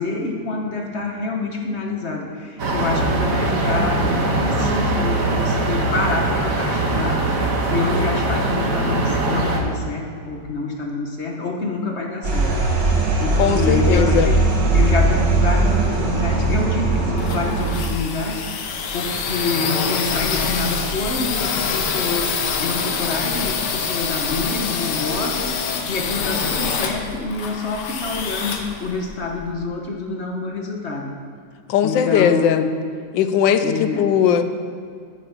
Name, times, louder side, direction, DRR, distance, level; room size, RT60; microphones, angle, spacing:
voice 1, 0.0-7.2 7.7-12.9 13.2-14.4 14.7-31.1 31.8-32.7 33.6-34.0, left 3 dB, 45° left, 1 dB, 1.2 m, -27 dB
sound 1, 2.6-9.6, right 2 dB, 50° right, 1.5 m, -21 dB
sound 2, 12.2-17.8, right 2 dB, 70° right, 2.2 m, -19 dB
voice 2, 13.4-14.3 17.1-17.2 31.7-32.6 33.1-34.4, left 8 dB, 90° left, 9 dB, 1.3 m, -18 dB
sound 3, 16.8-29.5, left 5 dB, 70° left, 1.4 m, -26 dB
8.7 x 7.8 x 5.9 m, 2.2 s
omnidirectional pair, 2.0 m